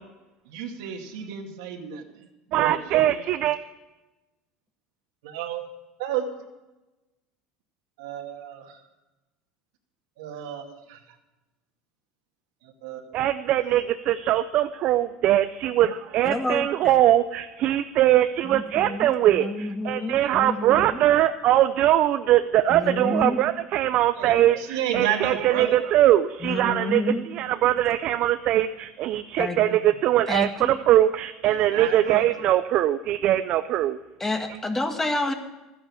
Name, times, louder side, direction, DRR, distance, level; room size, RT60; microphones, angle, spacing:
voice 1, 0.5-3.1 5.2-5.7 6.0-6.2 8.0-8.8 10.2-11.0 12.6-13.2 20.2-20.3 24.2-25.8 31.5-32.2, right 9 dB, 90° right, 3 dB, 2.1 m, -32 dB
voice 2, 2.5-3.6 13.1-34.0, right 13 dB, 55° right, 10 dB, 0.5 m, -22 dB
voice 3, 16.2-16.7 18.4-21.0 22.7-23.4 26.4-27.2 29.4-29.6 30.3-30.7 34.2-35.3, left 2 dB, 15° left, 5 dB, 1.7 m, -29 dB
13.5 x 10.5 x 7.2 m, 1.1 s
supercardioid pair, 115°, 2 cm